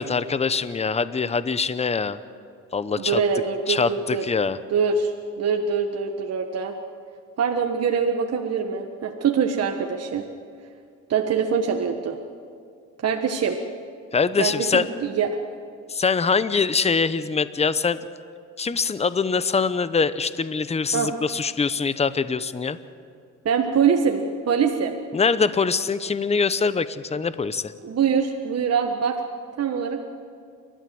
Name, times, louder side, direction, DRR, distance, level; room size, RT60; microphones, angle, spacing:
voice 1, 0.0-2.2 2.7-3.2 3.7-4.6 14.1-14.9 15.9-18.0 18.6-22.8 25.1-27.7, left 5 dB, 20° left, 14 dB, 0.8 m, -23 dB
voice 2, 3.0-4.3 4.7-6.7 7.4-10.2 11.1-12.2 13.0-13.6 14.4-15.3 20.9-21.1 23.4-24.9 27.8-29.2 29.6-30.1, right 6 dB, 55° right, 3 dB, 1.5 m, -24 dB
29.5 x 13.0 x 7.8 m, 2.3 s
cardioid pair, 90°, 30 cm